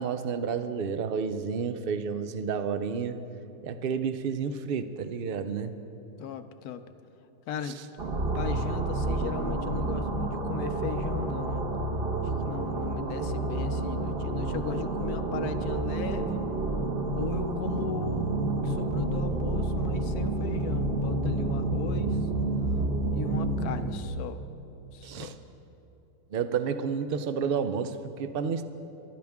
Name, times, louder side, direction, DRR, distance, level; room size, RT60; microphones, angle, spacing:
voice 1, 0.0-3.2 3.6-5.7 25.0-25.3 26.3-28.6, right 6 dB, 65° right, 10 dB, 0.5 m, -30 dB
voice 2, 6.2-6.8 7.5-7.8 8.3-11.7 12.4-16.4 17.1-22.3 22.7-22.8 23.1-24.4 24.9-25.4, left 7 dB, 70° left, 10 dB, 1.1 m, -38 dB
sound 1, 8.0-24.2, right 2 dB, 40° right, 1.1 m, -29 dB
23.5 x 12.0 x 3.6 m, 2.9 s
omnidirectional pair, 1.7 m